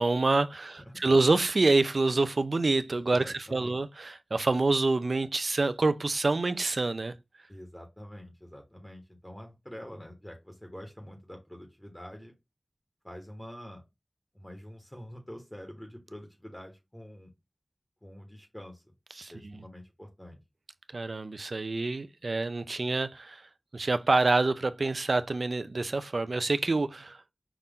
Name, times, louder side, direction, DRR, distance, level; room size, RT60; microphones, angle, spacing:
voice 1, 0.0-7.1 19.1-19.6 20.9-27.2, right 3 dB, 70° right, 0.5 m, -27 dB
voice 2, 0.6-1.0 3.1-3.8 7.5-12.3 13.0-13.8 14.3-17.3 18.0-18.9 19.3-20.4, equal, 15° left, 1.3 m, -46 dB
5.8 x 2.5 x 3.6 m
wide cardioid pair, 65°, 0 cm